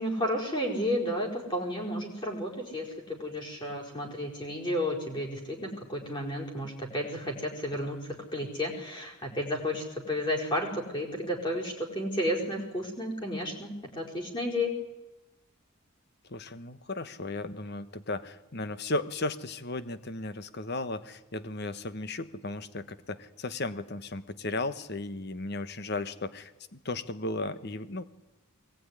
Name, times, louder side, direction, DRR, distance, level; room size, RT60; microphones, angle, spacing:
voice 1, 0.0-8.0 8.3-14.7, left 1 dB, 20° left, 0 dB, 5.0 m, -32 dB
voice 2, 16.3-28.0, left 2 dB, 45° left, 12 dB, 1.2 m, -35 dB
23.0 x 19.5 x 9.9 m, 1.0 s
head